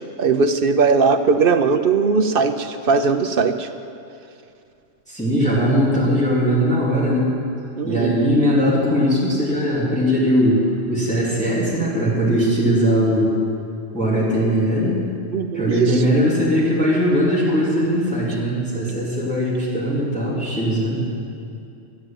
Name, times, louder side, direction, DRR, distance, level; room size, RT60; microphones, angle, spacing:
voice 1, 0.2-3.7 7.8-8.2 15.3-16.0, right 5 dB, 55° right, 8 dB, 0.7 m, -19 dB
voice 2, 5.1-7.3 7.8-10.6 10.9-13.3 13.9-15.0 15.5-21.0, equal, 5° left, -9 dB, 3.3 m, -19 dB
12.5 x 9.2 x 8.9 m, 2.5 s
omnidirectional pair, 1.3 m